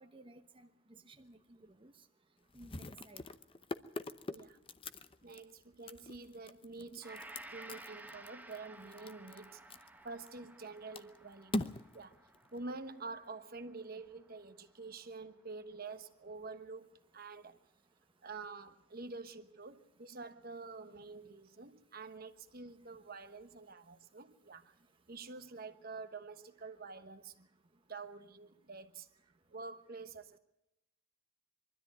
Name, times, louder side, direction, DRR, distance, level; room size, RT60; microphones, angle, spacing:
voice 1, 0.0-1.9 2.5-3.3, right 2 dB, 25° right, 1.0 m, -57 dB
sound 1, 1.1-1.3 1.6-1.7 2.5-10.7 10.9-13.1, left 1 dB, 30° left, 0.8 m, -43 dB
voice 2, 4.2-4.6 5.2-9.6 10.0-12.2 12.5-17.6 18.2-24.7 25.1-27.5 27.9-29.1 29.5-30.4, right 3 dB, 50° right, 1.2 m, -48 dB
Gong, 7.0-15.3 15.8-15.9, right 1 dB, 10° right, 1.5 m, -55 dB
23.5 x 13.0 x 9.2 m
head